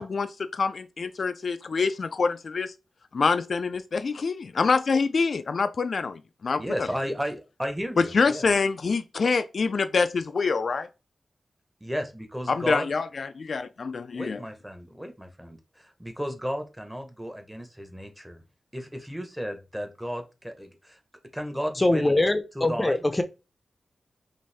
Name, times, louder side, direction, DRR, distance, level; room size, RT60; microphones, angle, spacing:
voice 1, 0.0-2.7 3.1-6.6 8.1-10.9 12.5-14.4, left 4 dB, 65° left, 0.3 m, -26 dB
voice 2, 6.6-8.5 11.8-12.9 14.1-18.4 18.7-21.0 21.3-22.2 22.5-23.0, equal, 5° right, 1.0 m, -34 dB
voice 3, 21.8-23.2, left 1 dB, 20° left, 0.6 m, -23 dB
5.3 x 2.6 x 3.4 m
wide cardioid pair, 75°, 0 cm